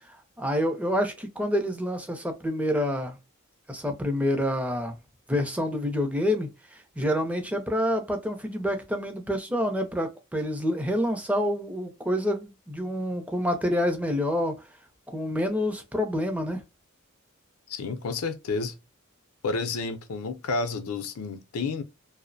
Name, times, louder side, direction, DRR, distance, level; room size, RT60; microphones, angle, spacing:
voice 1, 0.1-3.2 3.7-5.0 5.3-14.6 15.1-16.6, equal, 5° right, 0.4 m, -27 dB
voice 2, 17.7-18.8 19.4-21.8, left 3 dB, 80° left, 0.5 m, -30 dB
2.5 x 2.0 x 2.5 m
head